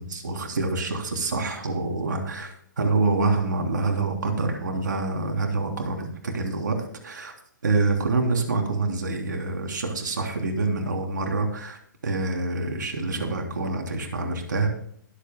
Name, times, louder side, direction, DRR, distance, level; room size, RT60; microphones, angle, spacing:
voice 1, 0.0-6.8 7.0-7.3 7.6-11.8 12.0-14.7, right 3 dB, 80° right, 2 dB, 3.4 m, -26 dB
22.0 x 8.3 x 2.2 m, 0.64 s
hypercardioid pair, 135°, 10 cm